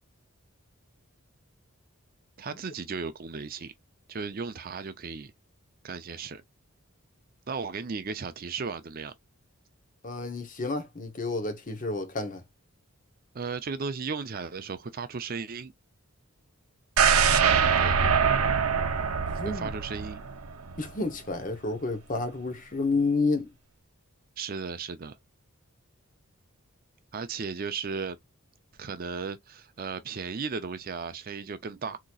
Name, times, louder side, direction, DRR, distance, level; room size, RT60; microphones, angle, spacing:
voice 1, 2.4-3.7 4.1-5.3 5.8-6.4 7.5-9.1 13.3-15.7 17.8-18.0 19.4-20.2 24.4-25.2 27.1-28.2 28.8-32.0, right 5 dB, 40° right, 0.5 m, -35 dB
voice 2, 10.0-12.4 19.4-19.7 20.8-23.5, left 3 dB, 35° left, 0.8 m, -30 dB
sound 1, 17.0-20.9 21.3-21.4, right 6 dB, 85° right, 0.7 m, -24 dB
3.9 x 2.9 x 2.3 m
head